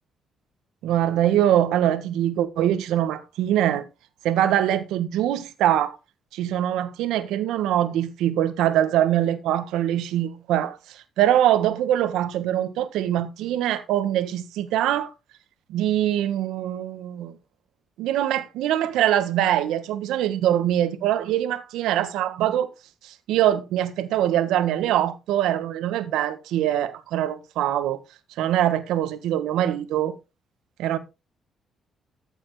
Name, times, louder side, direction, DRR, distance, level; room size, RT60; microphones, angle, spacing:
voice 1, 0.8-3.8 4.2-6.0 6.3-15.1 15.7-17.3 18.0-22.7 23.0-28.0 28.4-30.1 30.8-31.0, right 11 dB, 90° right, 1.6 m, -23 dB
14.5 x 7.2 x 3.3 m
cardioid pair, 90°, 0 cm